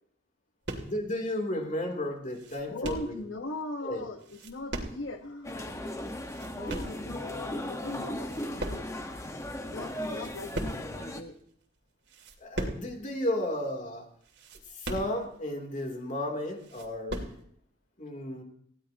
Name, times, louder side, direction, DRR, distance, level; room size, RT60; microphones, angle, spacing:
sound 1, 0.6-1.1 1.6-1.7 2.1-3.2 4.2-5.2 5.5-5.6 6.1-7.0 7.6-7.9 8.1-9.2 9.5-9.6 9.9-11.0 11.5-11.7 12.1-13.0 13.2-13.3 13.7-13.8 14.2-15.5 16.0-16.1 16.4-17.4, right 1 dB, 60° right, 2.6 m, -38 dB
voice 1, 0.8-3.1 3.8-4.1 12.4-14.0 14.7-17.2 18.0-18.4, left 1 dB, 40° left, 2 dB, 3.0 m, -33 dB
voice 2, 2.7-5.9 6.5-8.9 9.6-11.3, left 2 dB, 90° left, 5 dB, 1.3 m, -40 dB
sound 2, 5.4-11.2, left 1 dB, 15° left, 1.2 m, -37 dB
19.5 x 16.0 x 2.9 m, 0.67 s
head